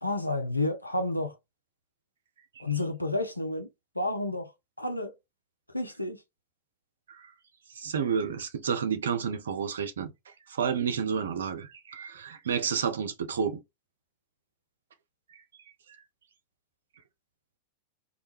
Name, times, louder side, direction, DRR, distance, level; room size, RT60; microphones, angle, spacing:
voice 1, 0.0-1.4 2.6-3.7 4.0-4.5 4.8-5.1 5.7-6.2, left 2 dB, 85° left, 0.4 m, -30 dB
voice 2, 7.8-13.6, right 7 dB, 65° right, 0.5 m, -30 dB
2.2 x 2.2 x 2.9 m
figure-of-eight pair, 90°, 0 cm